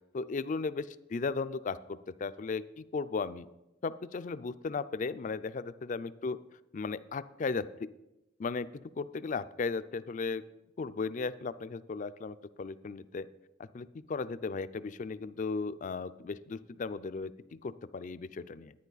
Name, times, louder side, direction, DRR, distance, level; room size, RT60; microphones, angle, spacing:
voice 1, 0.1-3.5 3.8-6.4 6.7-7.9 8.4-8.7 9.0-10.4 10.8-13.3 13.7-17.3 17.6-18.7, left 4 dB, 40° left, 14 dB, 0.4 m, -36 dB
10.5 x 9.9 x 4.0 m, 0.93 s
head